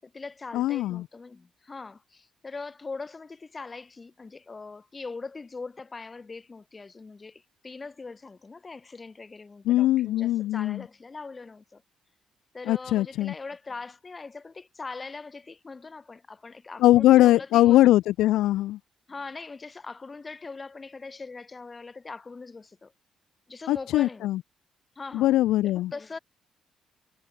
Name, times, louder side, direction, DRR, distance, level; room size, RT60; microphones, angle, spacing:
voice 1, 0.0-11.8 12.5-17.8 19.1-22.9 23.5-24.3 25.0-25.3 25.6-26.2, left 4 dB, 30° left, 7.3 m, -41 dB
voice 2, 0.5-1.0 9.7-10.8 12.7-13.3 16.8-18.8 23.7-24.4 25.1-25.9, left 15 dB, 90° left, 0.7 m, -21 dB
cardioid pair, 90°, 0 cm